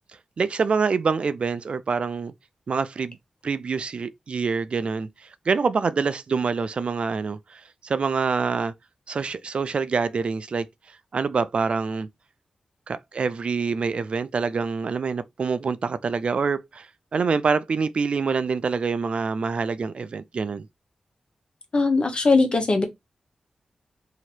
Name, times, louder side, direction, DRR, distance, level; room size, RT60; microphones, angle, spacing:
voice 1, 0.4-2.3 2.7-3.2 3.4-5.1 5.5-8.7 9.1-10.7 11.1-12.1 12.9-16.9 17.1-20.7, right 5 dB, 65° right, 0.4 m, -26 dB
voice 2, 21.7-22.8, left 3 dB, 55° left, 1.2 m, -20 dB
2.9 x 2.9 x 4.3 m
cardioid pair, 40°, 2 cm